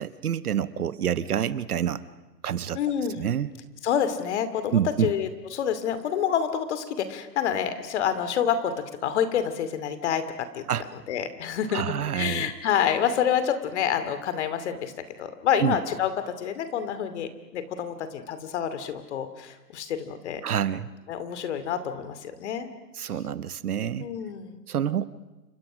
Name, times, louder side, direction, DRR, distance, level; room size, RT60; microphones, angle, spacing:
voice 1, 0.0-2.0 2.4-2.8 3.1-3.5 4.7-5.1 10.7-10.9 11.7-12.5 15.6-15.8 20.4-20.9 23.0-24.1 24.7-25.1, right 9 dB, 60° right, 16 dB, 1.2 m, -27 dB
voice 2, 2.7-3.3 3.8-8.7 9.0-10.6 11.1-14.9 15.2-20.4 21.1-22.7 24.0-24.6, left 8 dB, 40° left, 11 dB, 2.6 m, -28 dB
29.0 x 25.5 x 6.3 m, 1.1 s
hypercardioid pair, 140°, 50 cm